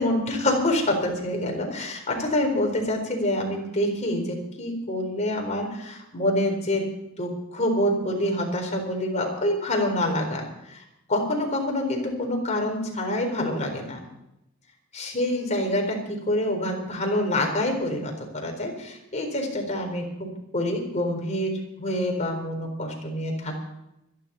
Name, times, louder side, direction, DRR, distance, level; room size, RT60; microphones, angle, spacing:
voice 1, 0.0-6.9 7.2-10.8 11.1-14.0 14.9-23.6, left 1 dB, 35° left, 2 dB, 4.2 m, -26 dB
25.0 x 11.0 x 4.3 m, 0.85 s
head